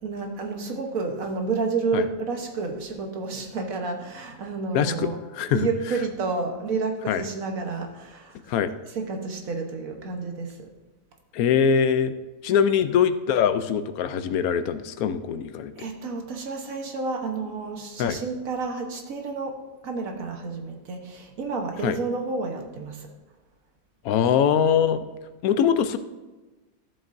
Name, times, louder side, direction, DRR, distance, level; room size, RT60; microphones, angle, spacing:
voice 1, 0.0-5.2 5.5-8.4 8.9-10.7 15.7-19.6 19.8-23.1, right 4 dB, 70° right, 3 dB, 1.5 m, -30 dB
voice 2, 4.7-5.7 7.1-7.2 8.5-8.7 11.3-12.1 12.4-15.7 18.0-18.2 21.8-22.0 24.0-25.0 25.4-26.0, left 8 dB, 85° left, 11 dB, 1.1 m, -22 dB
14.0 x 7.4 x 2.6 m, 1.2 s
omnidirectional pair, 1.5 m